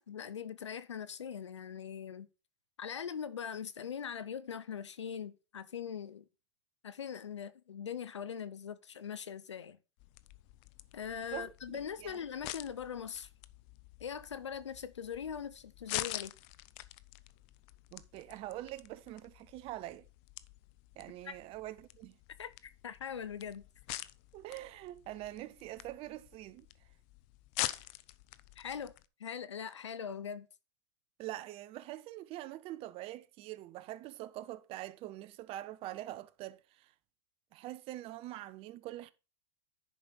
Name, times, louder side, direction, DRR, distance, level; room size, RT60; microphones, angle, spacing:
voice 1, 0.0-2.3 2.8-6.3 6.8-9.8 10.9-13.3 14.0-16.3 21.2-21.4 22.4-23.7 28.6-28.9 29.2-30.5, left 7 dB, 90° left, 0.8 m, -41 dB
sound 1, 10.0-29.1, left 18 dB, 45° left, 0.6 m, -46 dB
voice 2, 11.3-12.2 17.9-20.1 21.0-22.2 24.3-26.7 27.7-27.9 31.2-36.9 37.5-39.1, right 15 dB, 40° right, 0.7 m, -44 dB
10.5 x 5.1 x 4.1 m
hypercardioid pair, 105°, 14 cm